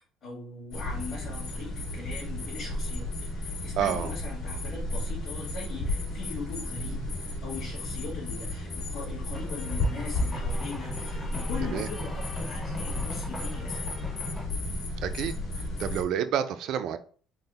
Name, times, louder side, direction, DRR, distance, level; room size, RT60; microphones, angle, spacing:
voice 1, 0.2-13.9, left 3 dB, 50° left, -6 dB, 1.5 m, -40 dB
sound 1, 0.7-16.0, left 1 dB, 80° left, 1.7 m, -33 dB
voice 2, 3.8-4.1 11.6-11.9 15.0-17.0, right 9 dB, 60° right, 11 dB, 0.3 m, -29 dB
sound 2, 9.3-14.5, left 2 dB, 15° left, 0.6 m, -40 dB
3.9 x 2.0 x 4.0 m, 0.43 s
cardioid pair, 150°, 0 cm